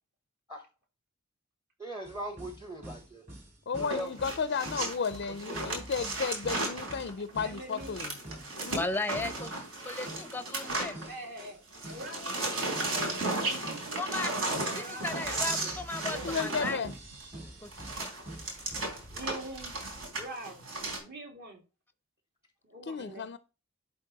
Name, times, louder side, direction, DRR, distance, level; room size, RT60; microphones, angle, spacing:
voice 1, 1.8-3.2 3.8-4.2 5.5-6.1, right 1 dB, 15° right, 0.9 m, -41 dB
sound 1, 2.0-10.7 10.9-13.4 13.6-19.1, right 1 dB, 35° right, 3.7 m, -47 dB
voice 2, 3.7-8.2 8.6-8.9 16.2-16.9 22.8-23.4, left 5 dB, 50° left, 0.4 m, -33 dB
sound 2, 3.7-11.5 11.7-21.0, right 2 dB, 70° right, 3.6 m, -35 dB
voice 3, 7.4-7.9 11.1-11.6 11.9-12.4 13.0-15.7 16.1-16.6 19.1-19.7 20.1-20.6 21.0-21.6 22.6-23.3, right 1 dB, 50° right, 2.5 m, -44 dB
voice 4, 8.8-9.5 9.8-11.1 14.0-14.3 14.8-16.9 17.6-17.7 18.0-18.1, left 2 dB, 10° left, 0.6 m, -35 dB
11.5 x 4.0 x 4.0 m
head